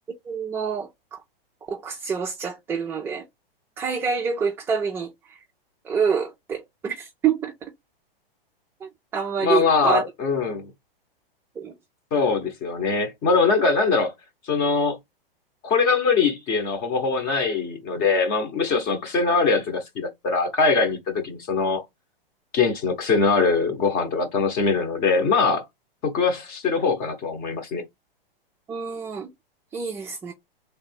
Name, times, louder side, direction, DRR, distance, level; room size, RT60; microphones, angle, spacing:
voice 1, 0.2-1.2 1.7-3.3 3.8-5.4 5.8-7.7 8.8-10.0 11.6-11.7 28.7-29.3 29.7-30.3, right 6 dB, 10° right, 0.3 m, -27 dB
voice 2, 9.4-10.7 12.1-14.1 14.5-15.0 15.6-21.8 22.5-25.6 26.0-27.8, left 4 dB, 30° left, 1.1 m, -22 dB
3.3 x 2.7 x 4.5 m
hypercardioid pair, 130°, 29 cm